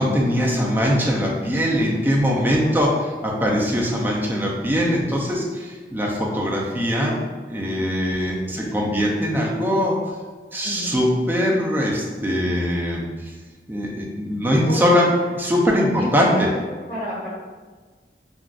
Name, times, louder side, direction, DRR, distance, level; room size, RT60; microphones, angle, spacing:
voice 1, 0.0-2.9 3.2-7.2 7.5-10.0 10.5-13.3 13.7-15.1 15.4-16.5, equal, 10° right, -3 dB, 0.4 m, -21 dB
voice 2, 2.5-2.9 8.5-8.8 10.6-10.9 14.5-15.1 16.0-16.5 16.9-17.3, equal, 35° left, -13 dB, 1.5 m, -31 dB
3.6 x 2.4 x 2.3 m, 1.4 s
head